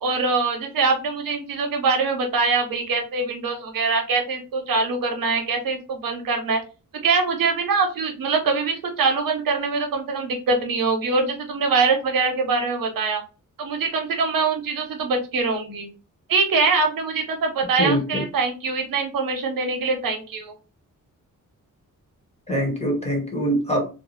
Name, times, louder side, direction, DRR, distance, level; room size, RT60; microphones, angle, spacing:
voice 1, 0.0-6.6 7.0-13.2 13.6-15.9 16.3-20.5, right 4 dB, 90° right, 4 dB, 0.8 m, -23 dB
voice 2, 17.8-18.2 22.5-23.9, equal, 20° left, -1 dB, 0.9 m, -23 dB
2.6 x 2.0 x 3.0 m, 0.32 s
wide cardioid pair, 125°, 33 cm